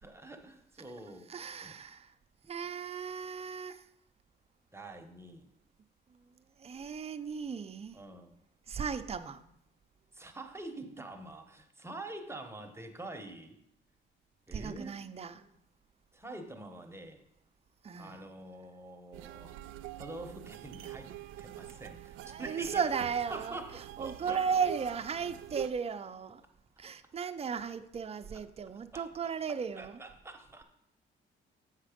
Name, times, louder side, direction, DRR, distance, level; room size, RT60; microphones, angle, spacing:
voice 1, 0.0-1.3 1.6-1.8 4.7-5.5 7.9-8.3 10.1-13.6 14.5-15.0 16.1-17.2 18.0-19.6 20.0-22.8 23.3-24.4 28.9-29.3 29.8-30.6, right 2 dB, 15° right, 0.9 m, -46 dB
voice 2, 1.3-2.1 2.5-3.9 6.6-8.0 8.7-9.4 14.5-15.5 17.8-18.2 21.7-21.8 22.2-23.6 24.0-26.4 26.8-30.0, right 6 dB, 30° right, 0.5 m, -35 dB
sound 1, 19.1-25.7, right 13 dB, 90° right, 0.4 m, -45 dB
7.3 x 5.9 x 5.1 m
cardioid pair, 90°, 20 cm